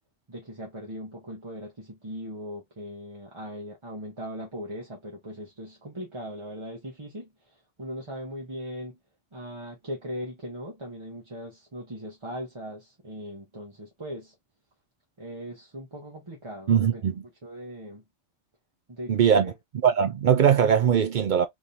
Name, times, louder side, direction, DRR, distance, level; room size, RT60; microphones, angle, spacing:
voice 1, 0.3-9.0 9.3-14.3 15.2-17.1 17.4-18.0 18.9-19.5, equal, 25° right, 0.9 m, -39 dB
voice 2, 16.7-17.1 19.1-19.5 19.8-21.5, right 8 dB, 65° right, 0.5 m, -20 dB
3.6 x 3.0 x 2.5 m
omnidirectional pair, 1.3 m